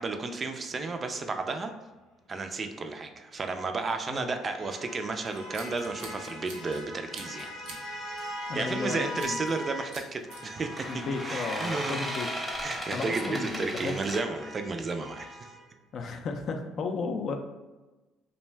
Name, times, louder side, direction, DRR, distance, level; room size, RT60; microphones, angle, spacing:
voice 1, 0.0-1.7 2.3-7.5 8.5-10.9 11.3-12.0 12.6-15.5, right 3 dB, 35° right, 6 dB, 0.3 m, -33 dB
sound 1, 3.3-10.0 10.3-15.6, left 1 dB, 90° left, 0.8 m, -42 dB
Scissors, 5.3-6.8 7.1-7.8 8.2-8.4 9.2-9.6 9.9-10.4, right 3 dB, 85° right, 0.5 m, -46 dB
voice 2, 8.5-9.4 10.9-12.3 12.9-14.0 15.9-17.4, left 4 dB, 55° left, 5 dB, 0.3 m, -34 dB
sound 2, 9.0-9.3 10.5-14.2, equal, 5° left, 0.7 m, -36 dB
2.5 x 2.1 x 3.2 m, 1.2 s
supercardioid pair, 80°, 0 cm